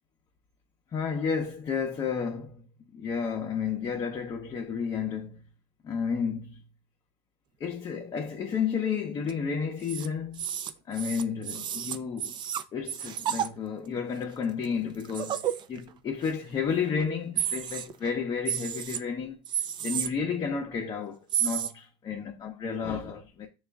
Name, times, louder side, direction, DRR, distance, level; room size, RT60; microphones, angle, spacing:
voice 1, 0.9-2.7 2.9-5.5 5.8-6.6 7.6-10.4 10.9-12.4 12.7-19.4 19.8-23.5, left 6 dB, 30° left, 0.7 m, -32 dB
sound 1, 9.2-9.3 9.8-10.1 10.3-13.5 14.2-14.3 14.6-14.7 15.0-15.9 16.2-16.3 16.7-17.0 17.4-18.1 18.5-19.0 19.5-20.1 21.3-21.7, right 9 dB, 35° right, 0.4 m, -31 dB
6.2 x 2.4 x 3.4 m
supercardioid pair, 115°, 14 cm